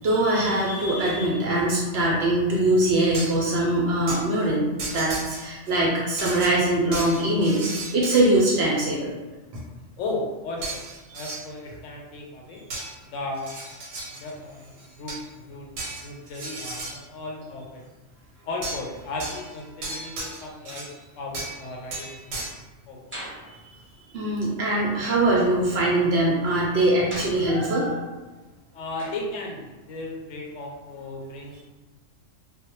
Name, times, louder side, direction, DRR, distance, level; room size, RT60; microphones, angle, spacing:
voice 1, 0.0-4.7 4.9-9.1 11.1-11.2 23.5-23.6 24.1-28.0, right 1 dB, 65° right, -4 dB, 0.7 m, -22 dB
sound 1, 3.1-3.5 4.1-4.2 4.8-5.7 6.2-8.5 10.6-11.4 12.7-12.9 13.4-14.3 14.8-15.3 15.8-17.0 18.6-18.9 19.2-21.0 21.3-21.6 21.9-22.5, right 3 dB, 85° right, 1.0 m, -35 dB
voice 2, 10.0-10.9 11.1-12.6 13.0-13.5 14.1-15.7 16.0-17.8 18.4-20.9 21.2-22.5 22.9-23.2 28.7-31.6, left 2 dB, 80° left, -1 dB, 0.9 m, -35 dB
sound 2, 23.1-23.6 25.0-25.4 27.1-27.9 29.0-29.4, equal, 10° right, 0.8 m, -39 dB
2.2 x 2.0 x 2.9 m, 1.2 s
omnidirectional pair, 1.3 m